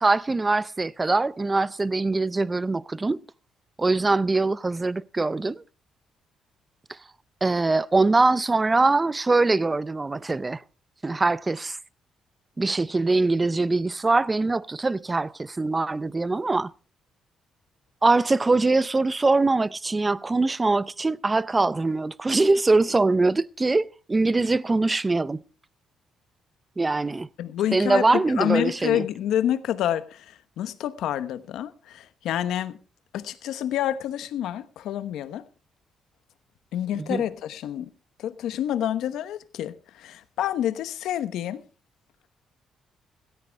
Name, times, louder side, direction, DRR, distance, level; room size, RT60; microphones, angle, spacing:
voice 1, 0.0-3.2 3.8-5.6 7.4-10.6 11.0-11.8 12.6-16.7 18.0-25.4 26.8-27.3 27.7-29.0 37.0-37.2, right 3 dB, 20° right, 0.5 m, -23 dB
voice 2, 27.4-32.8 33.1-35.4 36.7-37.9 38.2-41.6, left 11 dB, 85° left, 1.0 m, -28 dB
16.5 x 13.5 x 3.5 m
cardioid pair, 90°, 0 cm